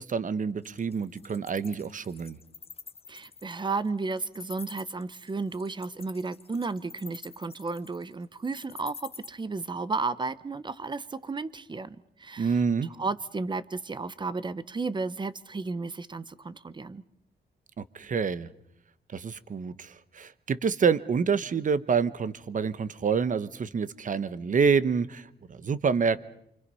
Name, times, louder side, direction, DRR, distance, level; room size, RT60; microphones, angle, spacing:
voice 1, 0.0-2.4 12.4-12.9 17.8-18.5 19.1-26.2, right 6 dB, 45° right, 15 dB, 1.1 m, -27 dB
Wild animals, 0.6-9.3, left 5 dB, 35° left, 1.0 m, -46 dB
voice 2, 3.1-12.6 13.0-17.0, right 3 dB, 25° right, 16 dB, 0.9 m, -33 dB
28.0 x 25.5 x 5.6 m, 0.75 s
wide cardioid pair, 125°, 18 cm